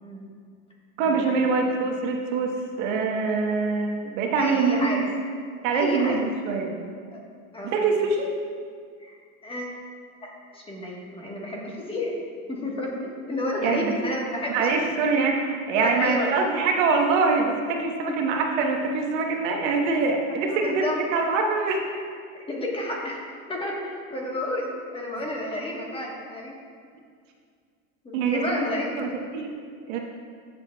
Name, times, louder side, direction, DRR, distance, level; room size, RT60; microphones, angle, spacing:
voice 1, 1.0-5.0 5.6-6.7 7.6-8.3 13.6-13.9 14.5-21.8 28.1-28.4 29.0-29.5 29.9-30.0, right 4 dB, 70° right, 2 dB, 1.3 m, -24 dB
voice 2, 4.4-5.0 5.7-6.2 7.1-7.2 7.5-7.7 9.0-9.1 9.4-9.7 10.2-12.1 12.5-14.9 15.7-16.3 18.1-18.4 20.5-21.0 21.9-22.0 22.5-23.2 23.5-26.5 28.0-28.9, left 1 dB, 15° left, -2 dB, 1.3 m, -31 dB
14.0 x 6.8 x 2.3 m, 2.1 s
supercardioid pair, 135°, 40 cm